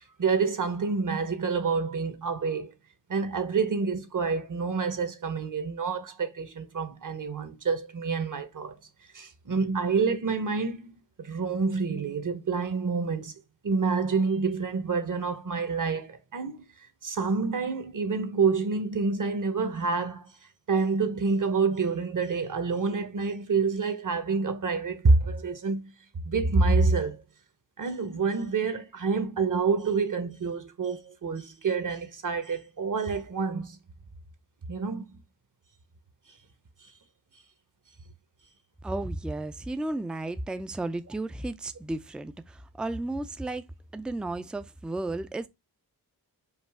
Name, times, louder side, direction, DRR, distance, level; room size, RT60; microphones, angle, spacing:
voice 1, 0.2-2.7 3.1-8.8 9.1-13.3 13.6-16.7 17.0-20.3 20.7-27.2 27.8-33.8 34.7-35.2, right 4 dB, 50° right, 1.1 m, -27 dB
voice 2, 38.8-43.6 43.9-45.5, right 2 dB, ahead, 0.4 m, -33 dB
5.3 x 2.4 x 3.6 m
cardioid pair, 60°, 39 cm